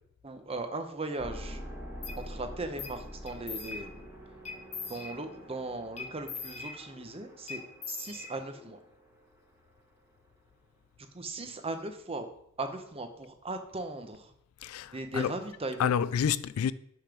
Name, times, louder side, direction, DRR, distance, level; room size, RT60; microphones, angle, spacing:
voice 1, 0.2-1.6 2.2-4.0 4.9-7.6 7.9-8.8 11.1-12.3 12.6-14.3 14.9-16.0, right 2 dB, 25° right, 0.8 m, -38 dB
sound 1, 1.2-10.3, equal, 10° right, 1.6 m, -47 dB
sound 2, 2.0-2.2 2.8-3.0 3.3-4.1 4.4-5.5 6.0-7.1 7.5-8.7, left 5 dB, 30° left, 1.0 m, -42 dB
voice 2, 14.6-15.3 15.8-16.7, left 8 dB, 70° left, 0.3 m, -29 dB
5.6 x 5.1 x 5.9 m
head